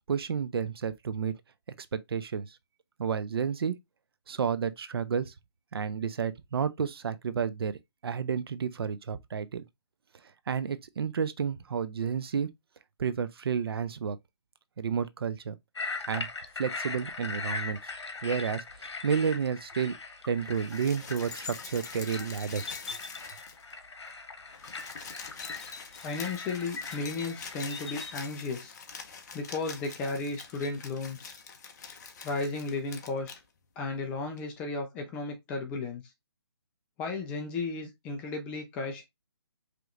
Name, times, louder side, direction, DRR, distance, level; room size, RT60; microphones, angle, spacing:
voice 1, 0.1-1.3 1.9-2.6 3.0-3.8 4.3-5.3 5.7-7.7 8.0-9.6 10.5-12.5 13.0-14.2 14.8-15.6 16.1-16.3 16.6-17.9 18.2-19.9 20.3-22.7, right 6 dB, 60° right, 0.6 m, -31 dB
sound 1, 15.8-28.1, left 4 dB, 80° left, 1.1 m, -40 dB
sound 2, 20.5-23.8 24.1-24.2 24.4-33.4 34.4-34.5, left 5 dB, 40° left, 0.8 m, -45 dB
voice 2, 26.0-28.7 29.3-31.4 32.2-33.3 33.8-36.0 37.0-39.0, left 3 dB, 10° left, 0.4 m, -34 dB
5.0 x 3.0 x 2.4 m
hypercardioid pair, 160°, 14 cm